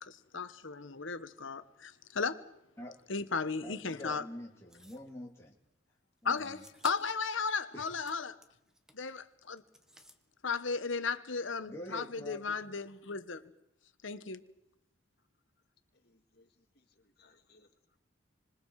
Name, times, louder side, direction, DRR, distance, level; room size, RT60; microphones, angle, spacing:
voice 1, 0.0-2.5 3.1-4.2 6.2-8.4 8.9-9.6 10.4-13.4 14.0-14.4, left 5 dB, 75° left, 1.3 m, -35 dB
voice 2, 3.6-5.6 6.2-6.6 7.7-7.9 11.7-12.4, left 1 dB, 15° left, 2.8 m, -46 dB
sound 1, 4.7-5.1 6.3-7.2 7.6-9.1 9.6-10.2, equal, 5° right, 1.0 m, -55 dB
voice 3, 15.9-18.0, left 3 dB, 50° left, 2.1 m, -68 dB
27.0 x 26.0 x 4.9 m
head